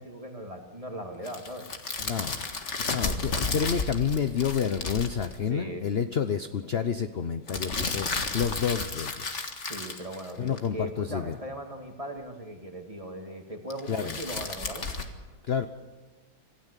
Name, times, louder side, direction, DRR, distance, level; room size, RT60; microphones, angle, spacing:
voice 1, 0.0-1.7 5.5-5.9 9.7-14.9, equal, 20° right, 3 dB, 2.3 m, -38 dB
sound 1, 1.2-5.3 7.5-10.7 13.7-15.1, left 3 dB, 40° left, 2.0 m, -33 dB
voice 2, 2.0-2.4 2.9-9.4 10.4-11.4 13.9-14.1 15.5-15.7, left 7 dB, 55° left, 10 dB, 0.6 m, -29 dB
26.5 x 16.0 x 8.3 m, 1.3 s
omnidirectional pair, 2.0 m